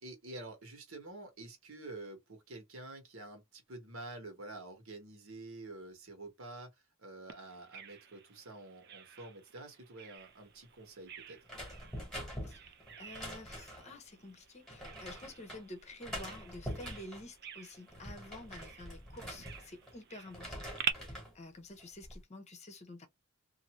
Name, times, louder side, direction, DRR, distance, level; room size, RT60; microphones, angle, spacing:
voice 1, 0.0-6.7 7.0-11.4, right 2 dB, 75° right, 1.4 m, -48 dB
Bird vocalization bird call bird song, 7.3-20.9, right 8 dB, 50° right, 0.5 m, -47 dB
sound 1, 11.5-14.0 14.7-15.6 16.0-17.3 17.7-20.0 20.3-21.3 21.8-22.2, equal, ahead, 1.3 m, -45 dB
voice 2, 12.4-20.6 20.9-23.1, left 2 dB, 30° left, 0.8 m, -50 dB
2.7 x 2.6 x 3.0 m
head